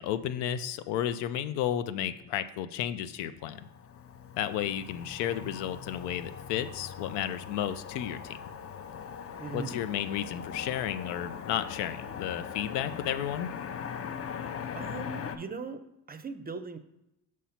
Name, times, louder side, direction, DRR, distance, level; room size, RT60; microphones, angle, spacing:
voice 1, 0.0-3.6 4.4-8.4 9.5-13.5, left 10 dB, 85° left, 12 dB, 0.5 m, -32 dB
Motor vehicle (road), 3.4-15.4, left 7 dB, 35° left, 0.5 m, -41 dB
voice 2, 9.4-9.9 14.7-15.8 16.1-16.8, right 4 dB, 25° right, 10 dB, 0.5 m, -39 dB
5.6 x 3.2 x 5.6 m, 0.86 s
supercardioid pair, 70°, 41 cm